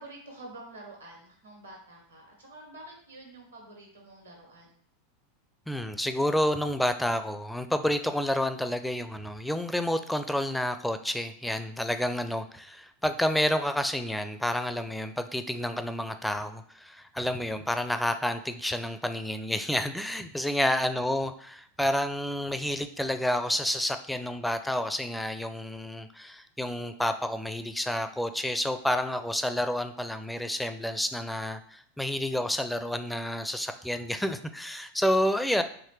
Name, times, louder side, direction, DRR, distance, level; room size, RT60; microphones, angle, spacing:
voice 1, 0.0-4.7 35.2-35.5, right 2 dB, 85° right, 0 dB, 1.6 m, -48 dB
voice 2, 5.7-35.6, left 1 dB, 5° left, 9 dB, 0.4 m, -29 dB
4.6 x 3.0 x 3.2 m, 0.64 s
figure-of-eight pair, 85°, 0 cm